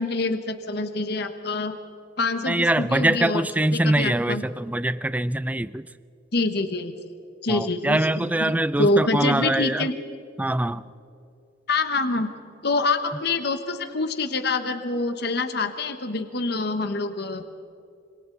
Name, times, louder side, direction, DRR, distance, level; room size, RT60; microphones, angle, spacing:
voice 1, 0.0-1.8 2.2-3.5 3.7-4.4 6.3-6.9 7.4-9.9 11.7-12.3 12.6-17.4, left 3 dB, 60° left, 8 dB, 1.3 m, -26 dB
voice 2, 2.5-5.9 7.5-9.9 10.4-10.8, right 1 dB, 10° right, 16 dB, 0.4 m, -23 dB
26.5 x 26.5 x 4.0 m, 2.6 s
head